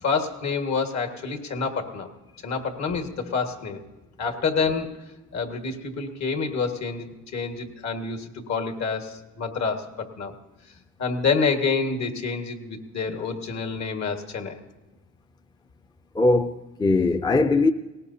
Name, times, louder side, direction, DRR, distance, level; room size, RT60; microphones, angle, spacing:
voice 1, 0.0-2.1 2.4-3.8 4.2-4.9 5.3-10.3 11.0-14.6, left 4 dB, 65° left, 1.8 m, -27 dB
voice 2, 16.1-17.7, left 3 dB, 15° left, 0.5 m, -20 dB
18.5 x 18.0 x 2.8 m
cardioid pair, 90°, 30 cm